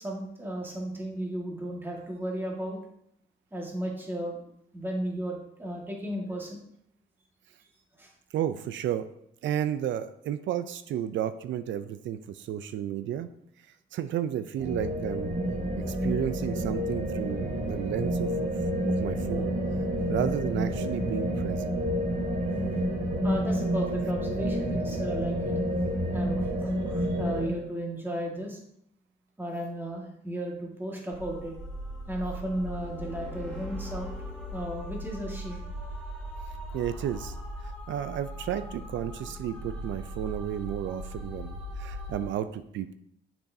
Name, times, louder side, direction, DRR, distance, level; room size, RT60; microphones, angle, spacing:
voice 1, 0.0-2.8 3.5-4.4 4.7-6.6 8.0-8.1 23.2-25.6 26.1-28.6 29.4-31.5 32.1-34.1 34.5-35.6, right 1 dB, 10° right, -2 dB, 1.8 m, -34 dB
voice 2, 8.3-9.1 9.4-13.3 13.9-15.3 15.7-18.5 19.0-19.5 20.1-21.7 36.7-37.3 37.9-42.9, right 10 dB, 70° right, 11 dB, 0.5 m, -32 dB
sound 1, 14.6-27.5, equal, 55° right, 2.7 m, -29 dB
sound 2, 31.1-42.3, equal, 5° left, 2.0 m, -39 dB
6.9 x 6.1 x 2.7 m, 0.73 s
cardioid pair, 90°, 20 cm